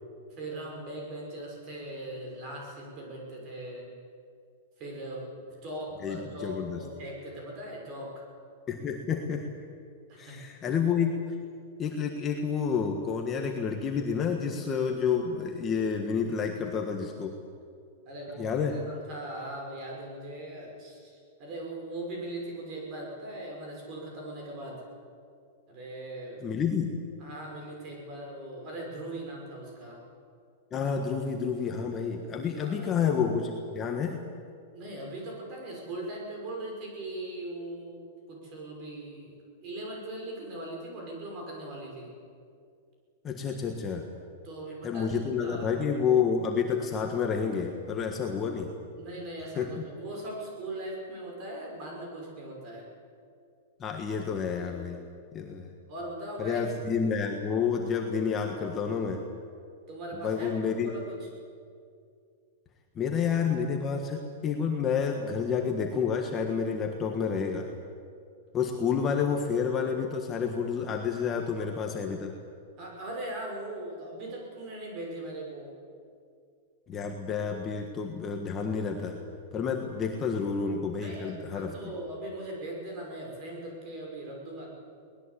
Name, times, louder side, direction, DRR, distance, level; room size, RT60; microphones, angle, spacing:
voice 1, 0.4-3.9 4.8-5.3 5.6-8.2 10.1-10.4 18.1-24.8 25.7-26.5 27.2-30.0 32.6-32.9 34.7-42.1 44.4-45.7 49.0-52.9 55.9-56.6 59.9-61.3 72.8-75.7 81.0-84.7, right 1 dB, 30° right, 0 dB, 6.2 m, -40 dB
voice 2, 6.0-6.8 8.7-9.5 10.2-11.1 11.8-17.3 18.4-18.8 26.4-26.9 30.7-34.2 43.2-44.0 44.8-48.7 49.6-49.7 53.8-55.0 55.3-55.7 56.4-59.2 60.2-60.9 62.9-67.7 68.5-72.3 76.9-79.2 79.5-81.7, left 6 dB, 15° left, 2 dB, 1.5 m, -29 dB
22.5 x 19.5 x 8.5 m, 2.3 s
supercardioid pair, 175°, 0 cm